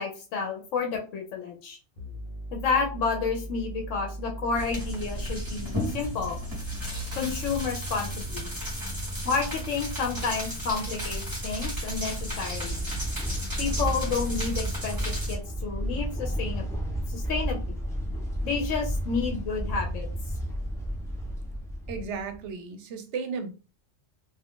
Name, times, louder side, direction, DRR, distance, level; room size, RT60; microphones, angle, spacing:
voice 1, 0.0-1.8 2.5-6.4 7.2-8.5 9.2-12.8 13.6-16.6 17.1-17.6 18.4-20.1, left 5 dB, 85° left, 1 dB, 1.0 m, -30 dB
sound 1, 2.0-7.9, equal, 50° left, 0.9 m, -39 dB
sound 2, 4.5-15.3, equal, 20° right, 1.1 m, -34 dB
sound 3, 11.4-22.5, equal, 5° left, 0.4 m, -32 dB
voice 2, 21.9-23.5, right 5 dB, 70° right, 7 dB, 0.9 m, -34 dB
2.5 x 2.4 x 3.6 m, 0.35 s
omnidirectional pair, 1.3 m